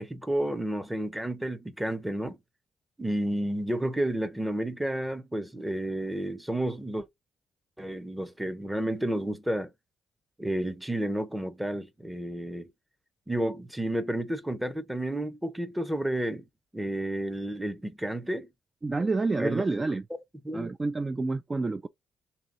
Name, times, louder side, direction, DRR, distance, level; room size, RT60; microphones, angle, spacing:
voice 1, 0.0-2.4 3.0-7.0 7.8-9.7 10.4-12.7 13.3-16.5 16.7-18.5 19.4-19.6 20.4-20.7, right 1 dB, 5° right, 0.8 m, -31 dB
voice 2, 18.8-20.0 20.5-21.9, right 3 dB, 25° right, 0.3 m, -28 dB
3.3 x 2.8 x 3.8 m
cardioid pair, 90°, 0 cm